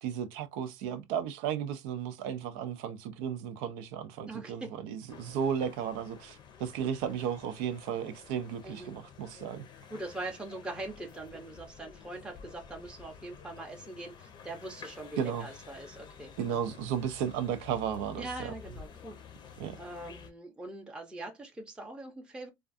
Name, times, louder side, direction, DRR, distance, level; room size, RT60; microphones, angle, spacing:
voice 1, 0.0-9.6 15.2-15.5 16.4-18.5 19.6-19.8, right 8 dB, 80° right, 0.4 m, -34 dB
voice 2, 4.3-4.7 8.6-9.0 9.9-16.6 18.2-19.2 19.7-22.5, right 2 dB, 10° right, 0.6 m, -42 dB
sound 1, 5.1-20.3, left 7 dB, 45° left, 0.6 m, -51 dB
2.4 x 2.3 x 2.4 m
supercardioid pair, 110°, 11 cm